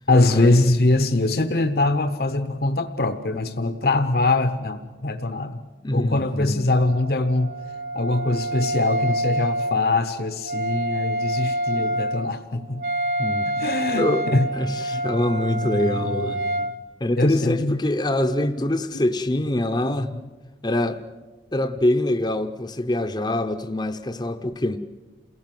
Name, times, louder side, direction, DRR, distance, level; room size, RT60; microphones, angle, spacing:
voice 1, 0.1-5.6 5.9-7.6 7.9-12.8 13.5-15.1 15.5-16.7 17.2-17.8 19.3-20.2, left 2 dB, 55° left, 0.8 m, -23 dB
voice 2, 5.8-6.6 11.7-11.9 13.2-13.5 14.0-14.2 14.5-16.4 17.0-20.1 20.6-21.0 21.5-24.8, left 1 dB, 25° left, 0.7 m, -24 dB
Wind instrument woodwind instrument, 6.7-16.8, right 1 dB, 55° right, 1.3 m, -27 dB
28.5 x 17.0 x 7.6 m
head